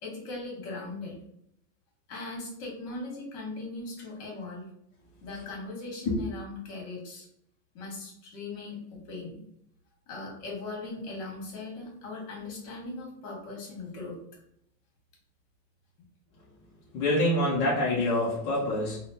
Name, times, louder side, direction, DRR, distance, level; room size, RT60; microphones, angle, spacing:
voice 1, 0.0-1.2 2.1-4.7 5.2-7.3 7.7-9.4 10.1-14.1, left 3 dB, 45° left, -1 dB, 1.2 m, -39 dB
voice 2, 16.9-19.0, left 1 dB, 25° left, -6 dB, 0.4 m, -26 dB
3.4 x 2.1 x 2.7 m, 0.73 s
supercardioid pair, 155°, 46 cm